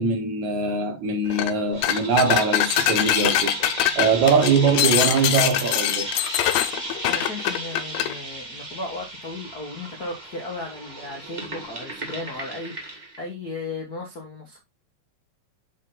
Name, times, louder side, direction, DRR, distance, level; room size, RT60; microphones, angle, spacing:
voice 1, 0.0-3.5 4.0-6.1, right 4 dB, 65° right, 2.1 m, -22 dB
sound 1, 1.3-1.5 1.8-8.1, left 12 dB, 80° left, 2.4 m, -23 dB
sound 2, 1.7-13.2, right 2 dB, 85° right, 0.4 m, -35 dB
voice 2, 7.1-14.6, left 2 dB, 60° left, 0.9 m, -35 dB
7.3 x 4.0 x 3.9 m
omnidirectional pair, 4.1 m